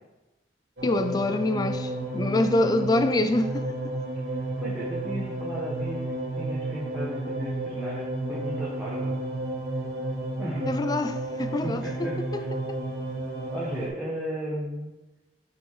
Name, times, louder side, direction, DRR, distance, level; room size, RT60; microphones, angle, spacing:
voice 1, 0.8-3.7 10.7-12.8, left 2 dB, 20° left, 9 dB, 0.3 m, -26 dB
sound 1, 0.8-13.9, right 2 dB, 70° right, 1.4 m, -32 dB
voice 2, 4.6-9.1 10.4-10.8 11.6-12.5 13.5-14.9, equal, 5° right, -7 dB, 0.9 m, -35 dB
6.1 x 5.5 x 3.2 m, 1.0 s
head